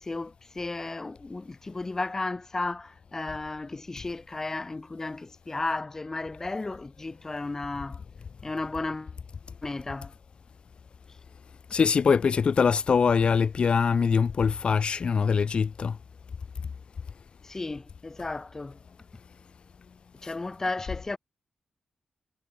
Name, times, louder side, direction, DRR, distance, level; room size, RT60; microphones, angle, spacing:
voice 1, 0.0-8.0 8.4-9.1 9.6-10.1 17.4-18.8 20.2-21.2, left 3 dB, 20° left, 6.6 m, -34 dB
voice 2, 11.7-16.0 20.2-20.3, left 6 dB, 45° left, 2.9 m, -23 dB
wide cardioid pair, 160°, 2 cm